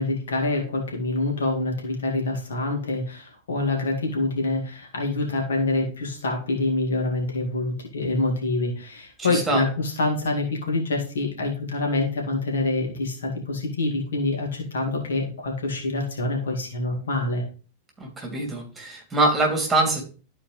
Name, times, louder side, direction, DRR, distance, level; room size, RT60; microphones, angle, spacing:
voice 1, 0.0-17.4, left 2 dB, 65° left, 0 dB, 2.2 m, -26 dB
voice 2, 9.2-9.6 18.0-20.0, right 2 dB, 10° right, 1 dB, 2.8 m, -24 dB
13.0 x 4.5 x 3.2 m, 0.38 s
figure-of-eight pair, 90°, 0 cm